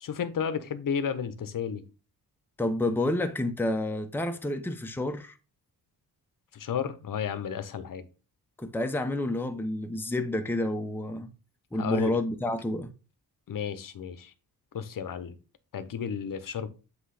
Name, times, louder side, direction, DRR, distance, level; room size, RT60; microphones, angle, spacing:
voice 1, 0.0-1.8 6.5-8.0 11.8-12.2 13.5-14.3 14.7-15.3 15.7-16.7, left 7 dB, 55° left, 0.9 m, -32 dB
voice 2, 2.6-5.4 8.6-11.3 11.7-12.9, left 1 dB, 5° left, 0.7 m, -29 dB
7.9 x 3.1 x 4.9 m
cardioid pair, 105°, 39 cm